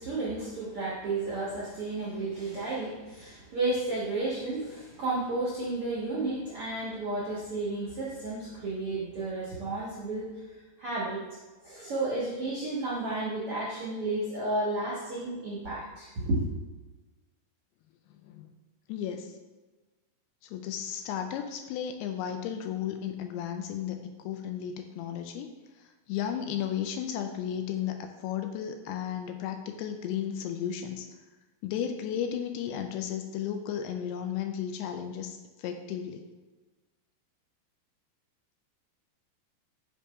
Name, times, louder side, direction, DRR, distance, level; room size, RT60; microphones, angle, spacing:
voice 1, 0.0-10.3 10.8-11.2 11.6-16.4, right 2 dB, 80° right, -7 dB, 1.3 m, -32 dB
voice 2, 18.9-19.4 20.4-25.5 25.8-31.1 31.6-36.2, left 9 dB, 85° left, 6 dB, 2.5 m, -34 dB
7.3 x 2.9 x 4.9 m, 1.2 s
omnidirectional pair, 4.6 m